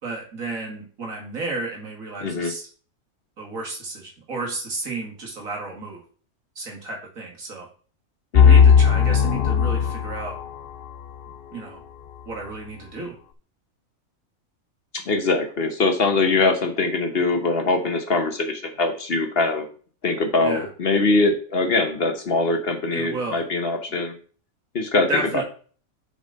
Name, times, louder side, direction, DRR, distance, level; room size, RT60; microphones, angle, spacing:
voice 1, 0.0-2.6 3.4-6.0 6.6-7.7 8.4-10.4 11.5-11.8 12.3-13.1 20.4-20.7 22.9-23.4 25.1-25.4, right 2 dB, 75° right, 0 dB, 2.4 m, -32 dB
voice 2, 2.2-2.5 8.3-8.6 14.9-19.7 20.0-24.1 24.7-25.4, left 3 dB, 50° left, 6 dB, 1.2 m, -22 dB
sound 1, 8.4-10.3, left 7 dB, 70° left, 0.5 m, -15 dB
7.0 x 5.2 x 3.9 m, 0.41 s
omnidirectional pair, 1.4 m